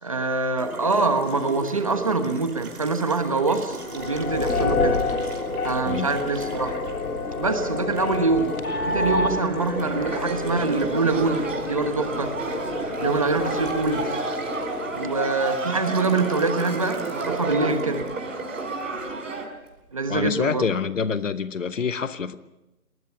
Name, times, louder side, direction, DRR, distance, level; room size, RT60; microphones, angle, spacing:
voice 1, 0.0-5.0 5.6-6.7 7.4-8.5 8.9-12.3 13.0-14.2 14.9-18.1 19.9-20.7, right 3 dB, 25° right, 1.1 m, -24 dB
Water tap faucet, 0.6-19.7, right 3 dB, 75° right, 5.1 m, -37 dB
sound 1, 3.7-15.1, left 3 dB, 70° left, 3.4 m, -29 dB
sound 2, 9.8-19.4, right 3 dB, 60° right, 5.1 m, -32 dB
voice 2, 20.1-22.4, left 6 dB, 55° left, 1.1 m, -26 dB
30.0 x 19.5 x 5.7 m
hypercardioid pair, 180°, 44 cm